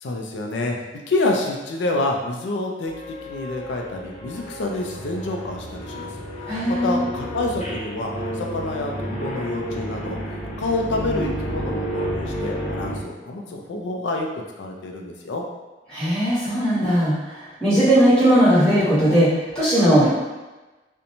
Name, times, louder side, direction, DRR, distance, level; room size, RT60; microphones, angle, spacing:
voice 1, 0.0-6.1 6.4-10.2 10.6-15.4, left 2 dB, 85° left, 2 dB, 0.4 m, -28 dB
sound 1, 2.9-13.0, equal, 40° left, 0.7 m, -31 dB
voice 2, 6.5-7.1 15.9-20.1, equal, 5° left, -12 dB, 1.1 m, -18 dB
2.6 x 2.1 x 2.8 m, 1.1 s
head